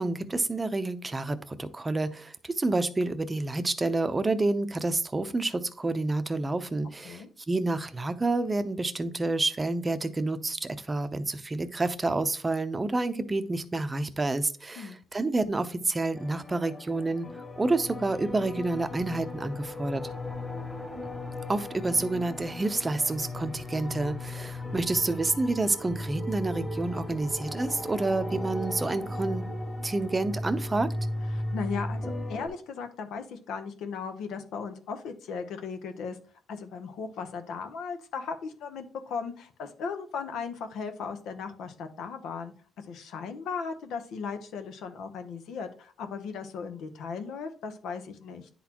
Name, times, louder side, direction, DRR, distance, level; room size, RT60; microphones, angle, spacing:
voice 1, 0.0-17.3 17.6-20.1 21.5-29.5 29.8-30.9, right 2 dB, 20° right, 11 dB, 0.6 m, -29 dB
sound 1, 16.2-32.5, left 1 dB, 25° left, 2.0 m, -36 dB
voice 2, 31.3-36.2 36.5-48.5, left 5 dB, 80° left, 7 dB, 0.8 m, -37 dB
10.0 x 4.1 x 2.9 m, 0.42 s
cardioid pair, 90°, 0 cm